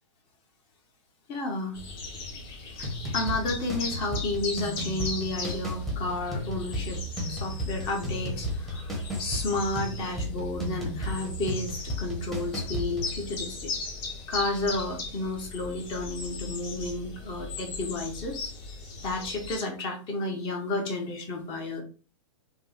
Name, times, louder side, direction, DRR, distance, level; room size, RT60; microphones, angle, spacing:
voice 1, 1.3-1.8 2.8-13.7 14.3-18.5 19.0-21.8, left 2 dB, 30° left, 3 dB, 0.8 m, -32 dB
sound 1, 1.7-19.6, left 3 dB, 45° left, 1.4 m, -38 dB
sound 2, 2.8-13.1, equal, ahead, 0.8 m, -34 dB
3.5 x 2.2 x 3.1 m, 0.36 s
hypercardioid pair, 135°, 17 cm